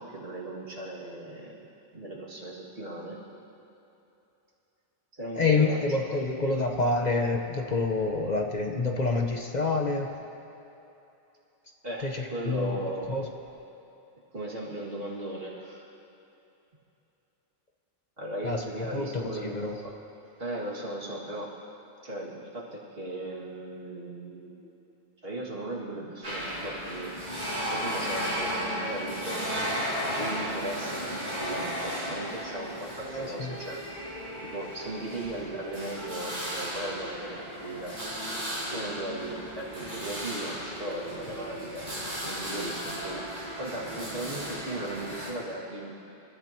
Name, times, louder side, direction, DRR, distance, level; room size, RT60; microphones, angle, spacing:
voice 1, 0.0-1.7 1.9-3.2 5.1-5.8 6.1-6.6 11.8-13.2 14.3-15.9 18.2-19.6 19.8-20.0 20.4-21.5 22.0-24.7 25.2-27.1 27.7-29.4 30.1-37.9 38.7-41.9 42.2-43.2 43.5-45.9, right 1 dB, 60° right, -4 dB, 2.5 m, -37 dB
voice 2, 5.4-10.1 12.0-12.8 13.1-13.2 18.4-18.6 18.9-19.8 33.1-33.5, left 3 dB, 45° left, 2 dB, 1.1 m, -27 dB
sound 1, 26.2-45.3, equal, 45° right, 4.3 m, -35 dB
27.5 x 14.0 x 3.0 m, 2.9 s
omnidirectional pair, 1.1 m